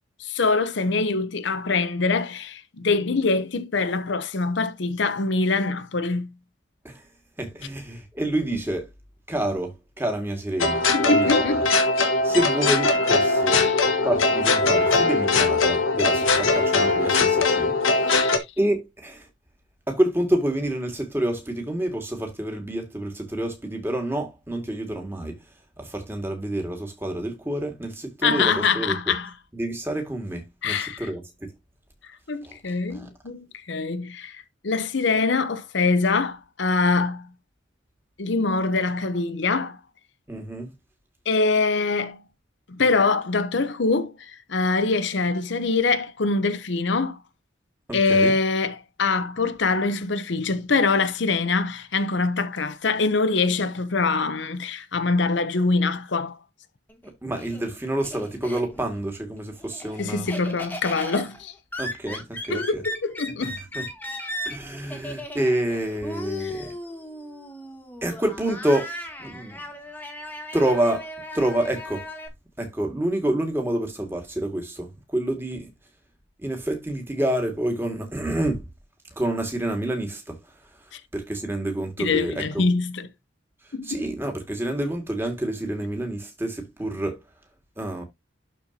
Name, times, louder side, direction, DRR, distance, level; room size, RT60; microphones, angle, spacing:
voice 1, 0.2-6.3 10.9-11.6 13.5-13.7 18.1-18.5 28.2-29.3 30.6-31.1 32.3-37.3 38.2-39.8 41.3-42.2 42.7-47.2 47.9-56.4 60.0-61.5 62.5-63.6 80.9-81.0 82.0-83.1 83.7-84.0, left 4 dB, 65° left, 0.7 m, -24 dB
voice 2, 7.4-8.9 9.3-11.6 12.2-13.7 14.0-19.3 19.9-25.4 25.8-29.1 29.5-31.5 32.4-33.1 40.3-40.7 47.9-48.3 57.0-60.3 61.8-62.8 63.4-63.9 64.5-66.7 68.0-68.9 69.2-69.6 70.5-71.1 71.3-72.1 72.6-75.7 76.4-78.7 79.2-82.7 83.8-87.2 87.8-88.0, right 1 dB, 10° right, 1.9 m, -28 dB
sound 1, 10.6-18.4, left 3 dB, 85° left, 1.5 m, -21 dB
Laughter, 56.9-59.0 59.4-72.3, left 1 dB, 10° left, 1.5 m, -36 dB
12.0 x 4.4 x 2.8 m
head